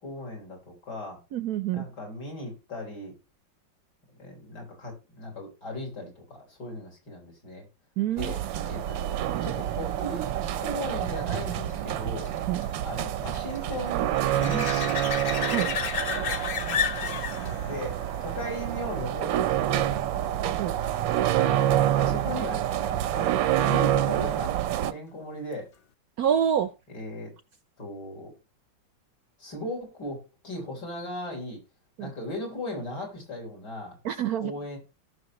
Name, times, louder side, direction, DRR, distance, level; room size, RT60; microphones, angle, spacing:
voice 1, 0.0-1.2 1.7-3.2 4.2-7.7 8.2-8.4 8.6-12.3 12.8-15.2 16.0-16.3 17.0-20.4 21.4-24.6 24.9-25.7 26.9-27.3 27.8-28.3 29.4-31.6 32.0-34.0 34.4-34.8, left 1 dB, 60° left, 0 dB, 4.3 m, -38 dB
voice 2, 1.3-1.8 8.0-8.7 12.5-12.7 15.5-15.7 20.6-20.8 26.2-26.7 32.0-32.1 34.0-34.5, right 9 dB, 65° right, 13 dB, 1.0 m, -27 dB
sound 1, 8.2-24.9, right 12 dB, 85° right, 1.4 m, -27 dB
sound 2, 8.6-19.9 25.5-25.6, left 7 dB, 80° left, 0.5 m, -35 dB
17.5 x 6.2 x 3.0 m, 0.29 s
omnidirectional pair, 2.0 m